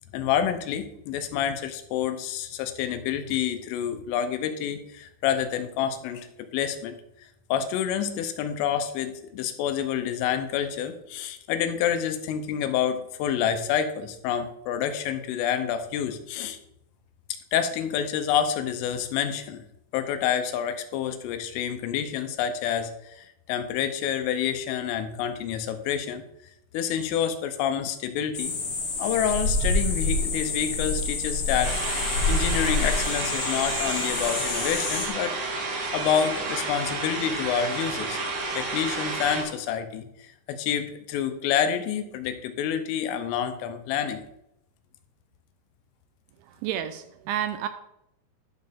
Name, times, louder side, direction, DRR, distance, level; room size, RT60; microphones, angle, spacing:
voice 1, 0.1-6.9 7.5-16.6 17.5-19.6 19.9-26.2 26.7-28.6 29.0-35.3 35.9-38.2 38.5-44.2, left 9 dB, 85° left, 8 dB, 3.3 m, -28 dB
sound 1, 28.3-35.1, left 3 dB, 55° left, 2.7 m, -27 dB
sound 2, 31.6-39.4, right 3 dB, 70° right, 4.3 m, -31 dB
voice 2, 46.4-47.7, right 10 dB, 85° right, 9 dB, 2.6 m, -30 dB
11.5 x 6.4 x 3.5 m, 0.80 s
omnidirectional pair, 5.7 m